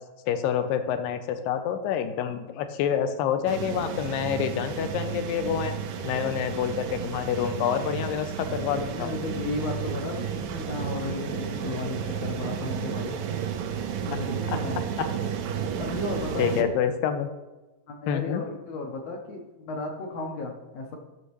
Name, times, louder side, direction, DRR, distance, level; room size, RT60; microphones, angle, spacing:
voice 1, 0.3-5.7 6.0-9.1 14.5-14.6 15.0-15.1 16.4-17.3 18.1-18.4, left 8 dB, 85° left, 8 dB, 2.3 m, -27 dB
sound 1, 3.5-16.6, right 8 dB, 85° right, 2.5 m, -32 dB
voice 2, 8.6-13.2 14.0-14.8 15.8-16.7 17.9-21.0, left 2 dB, 70° left, 2 dB, 1.6 m, -34 dB
13.5 x 6.4 x 3.1 m, 1.1 s
omnidirectional pair, 4.1 m